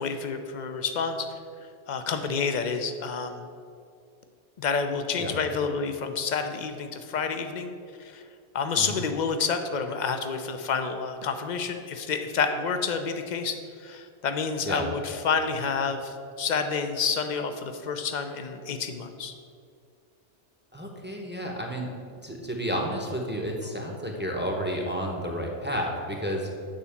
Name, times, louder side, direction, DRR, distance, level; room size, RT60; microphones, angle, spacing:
voice 1, 0.0-1.3 1.9-3.4 4.6-7.7 8.0-8.2 8.5-19.3, left 5 dB, 45° left, 7 dB, 0.7 m, -29 dB
voice 2, 20.7-21.9 22.2-26.5, equal, 10° right, 0 dB, 0.9 m, -31 dB
9.0 x 4.1 x 7.1 m, 2.3 s
omnidirectional pair, 1.2 m